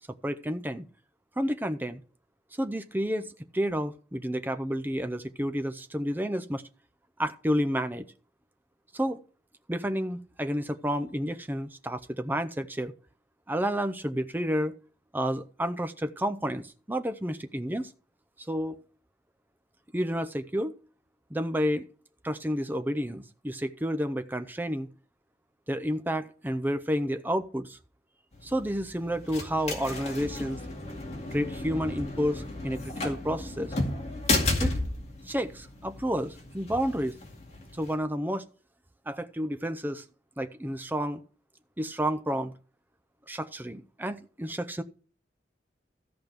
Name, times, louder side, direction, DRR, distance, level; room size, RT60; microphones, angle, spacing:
voice 1, 0.2-0.9 1.4-2.0 2.6-6.6 7.2-8.1 8.9-9.2 9.7-12.9 13.5-14.8 15.1-17.9 18.5-18.8 19.9-20.8 21.3-21.9 22.2-24.9 25.7-27.8 28.4-30.6 31.3-33.8 34.6-34.7 35.3-37.1 37.7-38.4 39.1-40.0 40.4-41.2 41.8-42.5 43.3-44.8, equal, 10° right, 0.6 m, -30 dB
sound 1, 28.3-37.9, left 2 dB, 35° left, 2.3 m, -33 dB
14.0 x 5.2 x 6.0 m
head